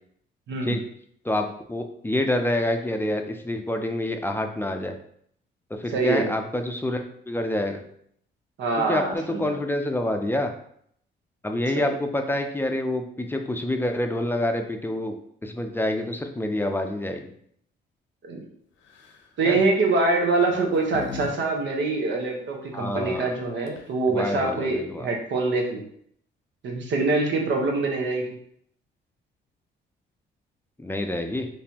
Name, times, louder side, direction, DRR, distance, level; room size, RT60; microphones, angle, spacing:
voice 1, 1.2-4.9 5.7-7.8 8.8-10.5 11.4-15.1 15.4-17.3 19.4-19.6 22.7-23.3 24.1-25.1 30.8-31.5, left 1 dB, 10° left, 5 dB, 0.5 m, -27 dB
voice 2, 5.9-6.3 8.6-9.6 11.7-12.0 18.2-18.4 19.4-25.8 26.6-28.4, right 3 dB, 65° right, 1 dB, 1.1 m, -24 dB
sound 1, 18.8-19.3 20.2-21.3 21.6-21.7 23.4-23.5 23.7-24.1, left 5 dB, 75° left, 0.7 m, -38 dB
4.2 x 3.2 x 2.9 m, 0.68 s
cardioid pair, 90°, 20 cm